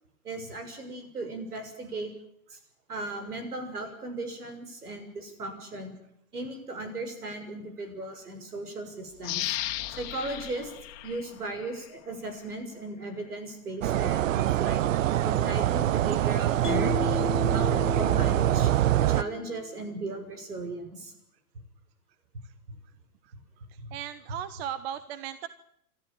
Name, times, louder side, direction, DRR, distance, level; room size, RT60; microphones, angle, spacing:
voice 1, 0.2-2.1 2.5-2.6 2.9-5.9 6.3-9.5 10.0-10.7 11.0-14.8 15.2-18.7 19.1-21.1, right 2 dB, 80° right, 8 dB, 6.9 m, -37 dB
sound 1, 9.2-11.9 12.4-12.5, left 15 dB, 40° left, 2.2 m, -35 dB
sound 2, 13.8-19.2, right 12 dB, 60° right, 0.8 m, -24 dB
Mallet percussion, 16.6-19.9, left 9 dB, 85° left, 1.3 m, -35 dB
voice 2, 23.9-25.5, right 10 dB, 45° right, 14 dB, 1.3 m, -36 dB
27.0 x 13.5 x 9.0 m, 0.72 s
hypercardioid pair, 120°, 44 cm